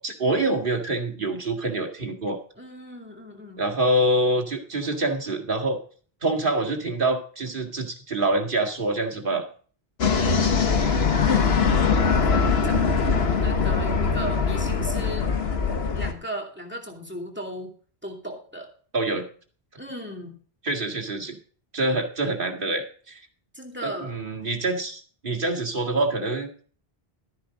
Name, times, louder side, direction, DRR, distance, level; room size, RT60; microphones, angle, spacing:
voice 1, 0.0-2.4 3.6-5.8 6.2-9.5 18.9-19.3 20.6-21.4 21.7-23.2 23.8-26.6, right 2 dB, 55° right, 3 dB, 2.2 m, -26 dB
voice 2, 2.6-3.7 10.1-11.1 12.1-15.3 15.9-17.7 18.0-18.7 19.8-20.3 23.5-24.2, equal, 10° right, 1 dB, 2.6 m, -37 dB
sound 1, 10.0-16.1, left 5 dB, 80° left, 1.5 m, -22 dB
13.5 x 10.5 x 3.8 m, 0.43 s
omnidirectional pair, 1.0 m